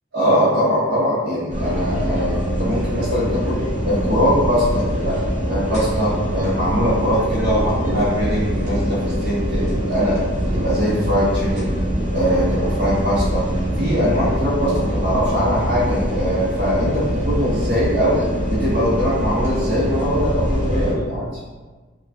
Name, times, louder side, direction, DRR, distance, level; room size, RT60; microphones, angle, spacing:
voice 1, 0.1-5.2 5.5-10.2 10.5-11.7 12.1-13.5 13.8-18.2 18.5-21.3, equal, 85° right, -10 dB, 0.8 m, -21 dB
sound 1, 1.5-20.9, equal, 40° right, 0.8 m, -23 dB
2.9 x 2.3 x 2.5 m, 1.3 s
head